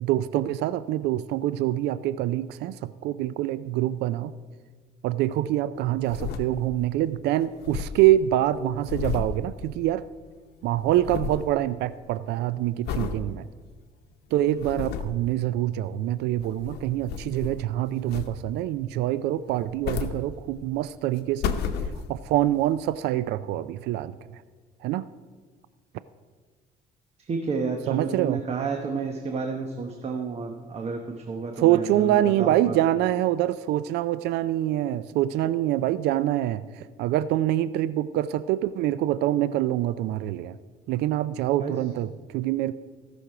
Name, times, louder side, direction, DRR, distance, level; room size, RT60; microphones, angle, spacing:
voice 1, 0.0-4.3 5.0-10.0 10.6-13.5 14.3-21.6 22.1-24.4 24.8-25.1 27.9-28.4 31.6-40.6 40.9-42.1 42.3-42.7, right 13 dB, 80° right, 16 dB, 0.4 m, -25 dB
sound 1, 5.8-6.9 7.2-7.3 7.5-10.2 10.5-11.5 12.0-12.3 12.8-13.2 13.7-13.8 14.4-15.2 16.2-17.7 18.1-18.7 19.5-20.8 21.2-22.4 22.9-23.0, left 7 dB, 75° left, 0.9 m, -33 dB
voice 2, 27.3-32.8 41.6-41.8, right 4 dB, 40° right, 4 dB, 1.0 m, -31 dB
16.5 x 6.2 x 4.9 m, 1.5 s
cardioid pair, 110°, 17 cm